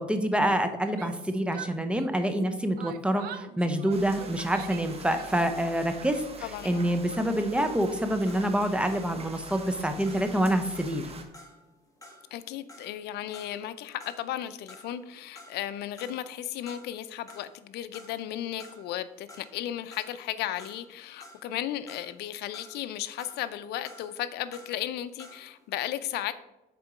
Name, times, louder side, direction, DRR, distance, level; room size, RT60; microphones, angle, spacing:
voice 1, 0.0-11.0, right 1 dB, 5° right, 0.8 m, -27 dB
Yell, 0.8-2.4 2.8-5.6, right 10 dB, 65° right, 0.5 m, -44 dB
sound 1, 3.9-11.2, right 2 dB, 35° right, 1.2 m, -45 dB
voice 2, 6.4-6.9 12.3-26.3, left 12 dB, 80° left, 0.5 m, -35 dB
sound 2, 7.6-14.4 14.7-15.7 16.0-17.0 17.3-25.6, left 1 dB, 20° left, 1.8 m, -52 dB
6.7 x 4.5 x 5.0 m
cardioid pair, 110°, 17 cm